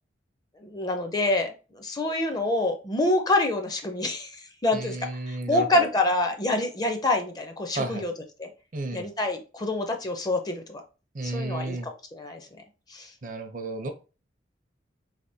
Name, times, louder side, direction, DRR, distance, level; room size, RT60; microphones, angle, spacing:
voice 1, 0.6-8.1 8.4-8.5 8.9-10.8 11.2-12.4 12.9-13.1, left 2 dB, 20° left, 5 dB, 0.4 m, -27 dB
voice 2, 4.7-5.9 7.7-8.0 8.7-9.1 11.1-11.9 13.2-13.9, right 2 dB, 45° right, 8 dB, 0.5 m, -32 dB
3.3 x 3.3 x 2.7 m, 0.33 s
head